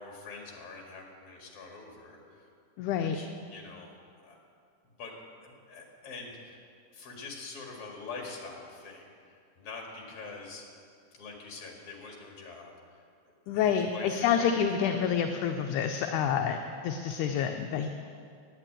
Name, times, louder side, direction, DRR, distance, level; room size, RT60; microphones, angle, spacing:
voice 1, 0.0-2.5 2.9-3.9 4.2-4.4 4.8-5.1 5.4-6.6 6.9-10.6 11.1-13.0 13.5-14.6, left 4 dB, 50° left, 0 dB, 2.9 m, -45 dB
voice 2, 2.8-3.2 13.5-17.9, left 8 dB, 80° left, 5 dB, 2.0 m, -28 dB
11.0 x 9.1 x 8.8 m, 2.3 s
omnidirectional pair, 3.6 m